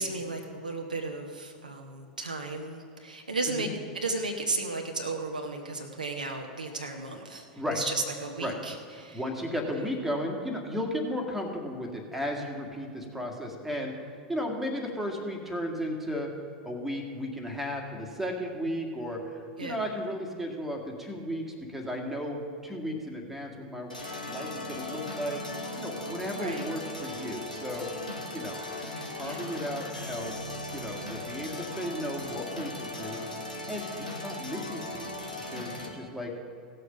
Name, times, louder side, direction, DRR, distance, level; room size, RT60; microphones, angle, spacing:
voice 1, 0.0-3.7 3.9-7.5 7.7-9.2 19.6-19.8 26.3-26.7 28.8-29.4, right 3 dB, 80° right, 2 dB, 1.0 m, -34 dB
voice 2, 9.1-13.9 14.3-16.3 16.6-23.9 24.3-25.4 25.8-27.9 28.3-28.6 29.1-33.2 33.7-35.1 35.5-36.3, equal, 5° right, 1 dB, 1.9 m, -34 dB
sound 1, 23.9-35.9, left 1 dB, 85° left, 1.4 m, -38 dB
17.0 x 6.7 x 5.6 m, 2.3 s
figure-of-eight pair, 85°, 4 cm